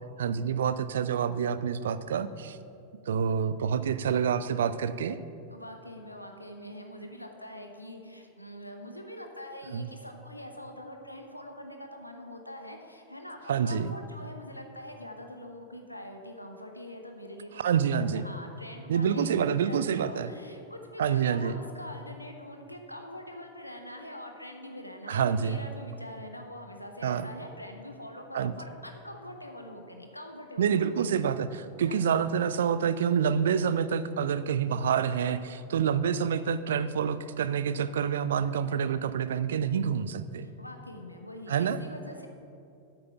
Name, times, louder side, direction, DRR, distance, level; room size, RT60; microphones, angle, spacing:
voice 1, 0.2-2.6 3.1-5.2 9.7-9.9 13.5-13.9 17.6-18.2 18.9-20.3 21.0-21.6 25.1-25.6 27.0-27.3 28.3-28.5 30.6-40.4 41.5-41.8, right 7 dB, 60° right, 14 dB, 0.4 m, -27 dB
voice 2, 5.5-31.1 31.9-32.1 40.4-42.3, left 1 dB, 85° left, 4 dB, 0.8 m, -44 dB
8.6 x 7.7 x 5.8 m, 2.6 s
figure-of-eight pair, 90°, 0 cm